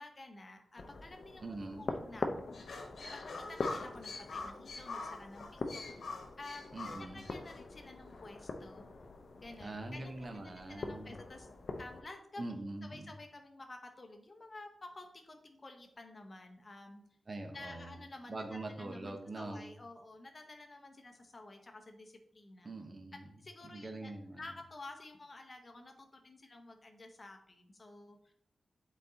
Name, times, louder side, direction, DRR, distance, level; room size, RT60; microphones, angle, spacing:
voice 1, 0.0-2.6 3.1-6.0 6.4-8.9 9.4-11.5 11.8-12.4 12.8-17.0 17.5-18.4 18.8-22.7 23.4-24.1 24.4-28.3, left 2 dB, 30° left, 4 dB, 0.9 m, -51 dB
sound 1, 0.8-12.0, left 3 dB, 50° left, 0.6 m, -44 dB
voice 2, 1.4-1.9 6.7-7.2 9.6-11.2 12.4-13.1 17.3-19.7 22.6-23.3 23.6-24.4, right 2 dB, 35° right, 3 dB, 0.7 m, -43 dB
sound 2, 2.5-7.6, left 3 dB, 80° left, 1.0 m, -44 dB
7.9 x 4.1 x 3.9 m, 0.71 s
wide cardioid pair, 180°, 0 cm